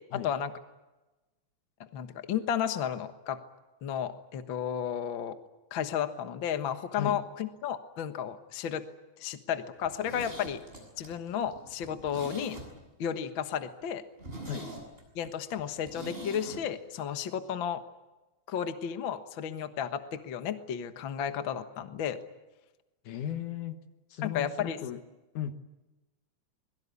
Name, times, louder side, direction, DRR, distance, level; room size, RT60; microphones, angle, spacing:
voice 1, 0.1-0.5 1.9-3.4 3.8-5.4 5.7-8.8 9.2-10.6 11.0-12.6 13.0-14.0 15.2-17.8 18.5-22.2 24.2-24.8, left 8 dB, 50° left, 8 dB, 1.6 m, -33 dB
Zipper (clothing), 9.8-13.1 13.4-13.5 13.8-13.9 14.2-16.6 16.9-17.0, right 1 dB, 15° right, 7.7 m, -44 dB
voice 2, 23.0-23.8 24.1-25.0 25.3-25.6, left 9 dB, 70° left, 9 dB, 2.7 m, -36 dB
26.5 x 22.0 x 8.5 m, 1.1 s
omnidirectional pair, 3.8 m